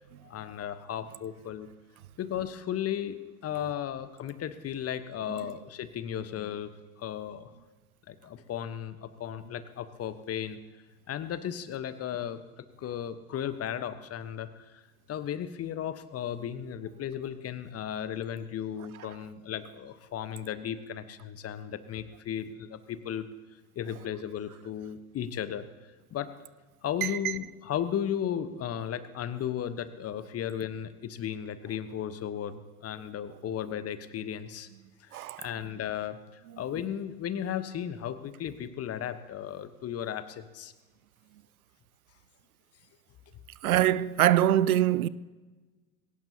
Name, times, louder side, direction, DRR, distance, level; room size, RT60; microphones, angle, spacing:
voice 1, 0.2-1.7 2.2-6.7 7.0-7.5 8.1-10.6 11.1-14.8 15.1-23.3 23.7-25.7 26.1-26.3 26.8-34.7 35.0-36.2 36.6-40.7, left 9 dB, 35° left, 1.2 m, -35 dB
voice 2, 27.0-27.3 35.1-35.5 43.6-45.1, right 12 dB, 75° right, 0.6 m, -24 dB
21.5 x 18.0 x 2.9 m
figure-of-eight pair, 70°, 43 cm